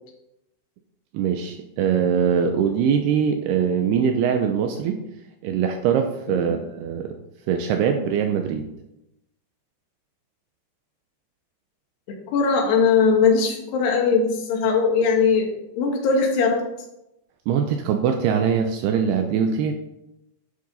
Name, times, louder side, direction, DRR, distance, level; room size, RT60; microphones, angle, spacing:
voice 1, 1.1-5.0 5.4-7.2 7.5-8.6 17.5-19.7, right 7 dB, 90° right, 5 dB, 2.4 m, -22 dB
voice 2, 12.3-16.6, left 5 dB, 70° left, 0 dB, 3.7 m, -20 dB
10.5 x 7.8 x 4.0 m, 0.89 s
omnidirectional pair, 5.3 m